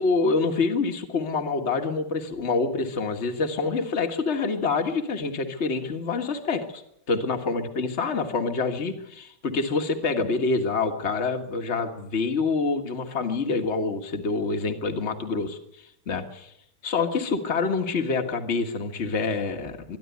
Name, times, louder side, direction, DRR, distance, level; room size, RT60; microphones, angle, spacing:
voice 1, 0.0-6.8 7.1-16.5 16.8-20.0, left 4 dB, 40° left, 5 dB, 2.0 m, -26 dB
24.0 x 11.5 x 9.5 m, 0.77 s
omnidirectional pair, 1.9 m